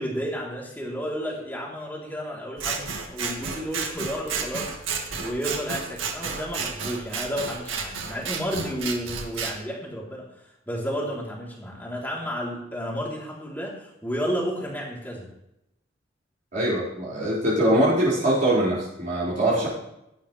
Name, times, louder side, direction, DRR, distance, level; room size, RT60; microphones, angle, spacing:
voice 1, 0.0-4.8 5.2-10.3 10.7-15.3 19.2-19.6, equal, 10° left, -3 dB, 3.5 m, -32 dB
Scissors, 2.6-9.5, right 5 dB, 85° right, 2.0 m, -32 dB
voice 2, 16.5-19.7, right 1 dB, 40° right, -9 dB, 5.2 m, -22 dB
17.0 x 12.0 x 3.4 m, 0.84 s
head